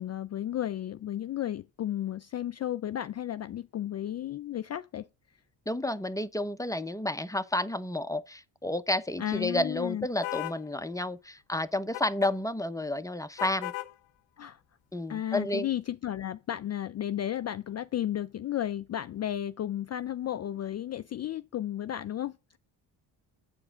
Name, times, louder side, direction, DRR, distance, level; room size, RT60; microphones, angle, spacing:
voice 1, 0.0-5.1 9.2-10.1 14.4-14.6 15.1-22.6, left 11 dB, 40° left, 0.4 m, -33 dB
voice 2, 5.7-13.7 14.9-15.7, left 1 dB, 5° left, 0.7 m, -31 dB
sound 1, 10.2-10.6 11.9-12.3 13.4-13.9, left 16 dB, 85° left, 0.8 m, -36 dB
8.8 x 4.8 x 6.4 m
supercardioid pair, 65°, 45 cm